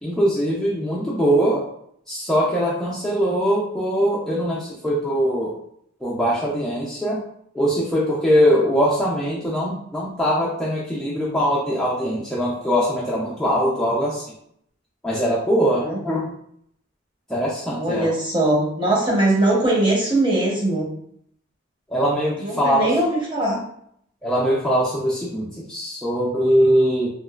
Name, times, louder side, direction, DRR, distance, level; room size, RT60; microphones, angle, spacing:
voice 1, 0.0-1.6 2.1-5.5 6.0-7.2 7.5-14.2 15.0-16.2 17.3-18.1 21.9-22.9 24.2-27.1, equal, ahead, -7 dB, 0.4 m, -21 dB
voice 2, 17.7-20.9 22.4-23.6, right 1 dB, 25° right, -3 dB, 0.7 m, -21 dB
2.9 x 2.3 x 2.3 m, 0.69 s
head